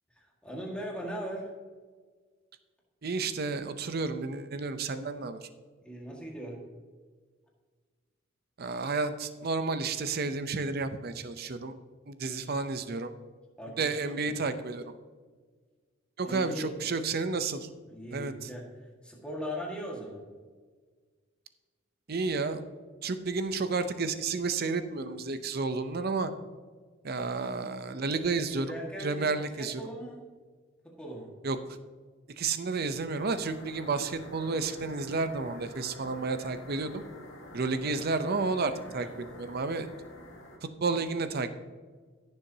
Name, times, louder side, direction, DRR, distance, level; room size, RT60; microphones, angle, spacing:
voice 1, 0.2-1.5 5.8-6.7 13.6-14.4 16.2-16.7 17.9-20.3 28.3-30.2 30.8-31.3 37.8-38.1 38.8-39.1, equal, 5° left, -2 dB, 1.8 m, -40 dB
voice 2, 3.0-5.5 8.6-11.7 12.1-13.1 13.8-14.9 16.2-17.7 18.1-18.5 22.1-22.6 23.0-26.3 27.0-28.7 29.0-29.8 31.4-31.6 32.4-37.0 37.5-39.9 40.8-41.5, right 4 dB, 50° right, 10 dB, 0.6 m, -31 dB
sound 1, 33.2-40.6, left 1 dB, 70° left, 1.8 m, -48 dB
15.5 x 7.0 x 2.8 m, 1.5 s
head